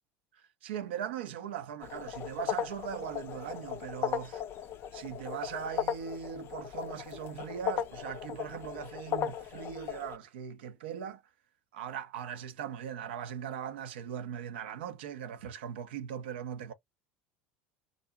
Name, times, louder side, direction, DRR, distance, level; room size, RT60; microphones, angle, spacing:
voice 1, 0.6-4.4 4.9-11.2 11.7-16.7, right 9 dB, 65° right, 0.5 m, -39 dB
sound 1, 1.8-10.2, left 9 dB, 40° left, 0.4 m, -37 dB
2.5 x 2.0 x 2.8 m
figure-of-eight pair, 70°, 6 cm